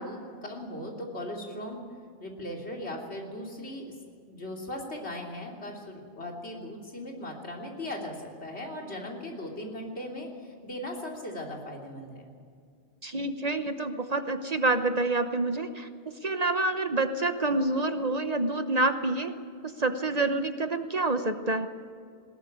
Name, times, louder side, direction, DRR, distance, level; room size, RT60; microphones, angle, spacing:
voice 1, 0.0-1.8 2.2-3.8 4.3-8.2 8.4-12.3, left 1 dB, 80° left, 0 dB, 3.5 m, -38 dB
voice 2, 13.0-15.9 16.2-19.3 19.6-21.7, right 2 dB, 40° right, 8 dB, 1.0 m, -27 dB
20.5 x 17.0 x 8.7 m, 2.2 s
omnidirectional pair, 1.1 m